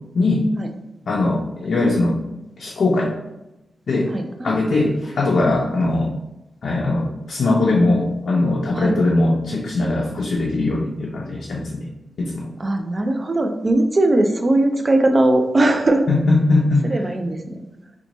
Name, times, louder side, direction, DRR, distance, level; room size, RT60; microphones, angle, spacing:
voice 1, 0.1-0.5 1.1-2.2 2.6-3.1 3.9-4.1 4.4-6.1 6.6-11.9 12.2-12.5 16.1-16.9, left 2 dB, 65° left, -2 dB, 0.4 m, -20 dB
voice 2, 4.1-4.7 8.7-9.0 12.6-16.1 16.8-17.6, right 2 dB, 30° right, 5 dB, 0.3 m, -19 dB
2.9 x 2.2 x 3.8 m, 0.96 s
wide cardioid pair, 130°, 0 cm